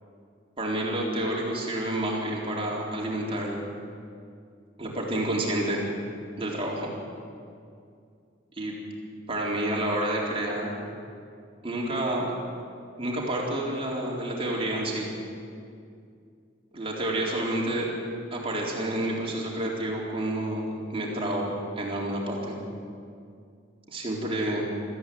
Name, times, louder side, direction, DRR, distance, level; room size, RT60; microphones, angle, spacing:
voice 1, 0.6-3.6 4.8-5.9 6.4-6.9 8.6-8.7 9.3-10.7 11.6-12.3 13.0-15.1 16.7-17.9 18.3-22.5 23.9-24.7, right 1 dB, 30° right, -3 dB, 4.0 m, -29 dB
23.0 x 14.5 x 9.4 m, 2.4 s
head